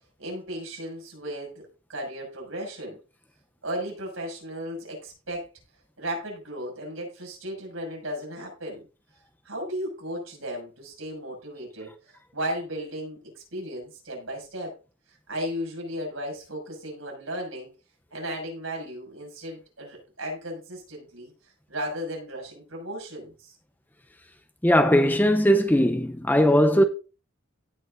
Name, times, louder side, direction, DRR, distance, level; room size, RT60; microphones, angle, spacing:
voice 1, 0.2-3.0 3.6-5.5 6.0-8.9 9.4-14.7 15.1-17.7 18.1-23.5, equal, 90° right, 6.5 m, -35 dB
voice 2, 24.6-26.8, equal, 10° left, 0.6 m, -19 dB
17.5 x 6.4 x 2.6 m
head